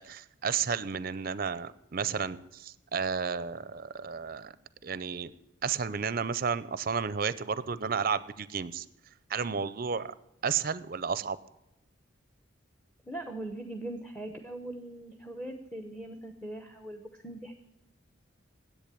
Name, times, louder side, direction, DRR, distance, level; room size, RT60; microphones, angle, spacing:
voice 1, 0.0-4.5 4.8-5.3 5.6-8.9 9.3-10.1 10.4-11.4, right 6 dB, 45° right, 17 dB, 0.5 m, -32 dB
voice 2, 13.0-17.5, right 1 dB, 5° left, 5 dB, 0.9 m, -40 dB
10.5 x 8.3 x 8.4 m, 0.89 s
head